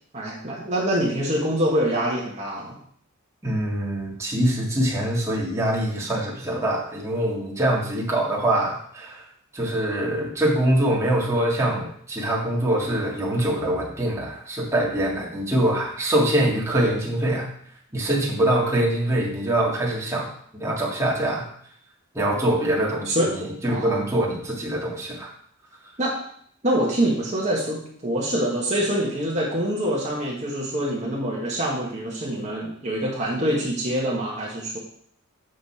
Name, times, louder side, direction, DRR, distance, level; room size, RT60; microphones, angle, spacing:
voice 1, 0.1-2.8 23.0-23.3 23.7-24.0 26.0-26.2 26.6-34.8, right 1 dB, 35° right, -5 dB, 1.6 m, -25 dB
voice 2, 3.4-9.2 9.5-17.5 17.9-21.5 22.1-25.3, right 1 dB, 15° right, -5 dB, 1.9 m, -24 dB
7.6 x 6.6 x 4.3 m, 0.63 s
head